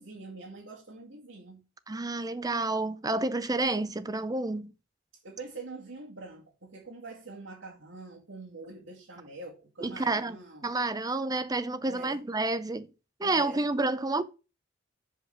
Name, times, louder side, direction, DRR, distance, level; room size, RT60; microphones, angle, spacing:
voice 1, 0.0-1.6 5.1-10.7 11.8-12.2 13.2-13.7, right 3 dB, 70° right, 2.2 m, -45 dB
voice 2, 1.9-4.7 9.8-12.9 13.2-14.2, right 2 dB, 20° right, 0.6 m, -29 dB
6.6 x 5.1 x 6.3 m
head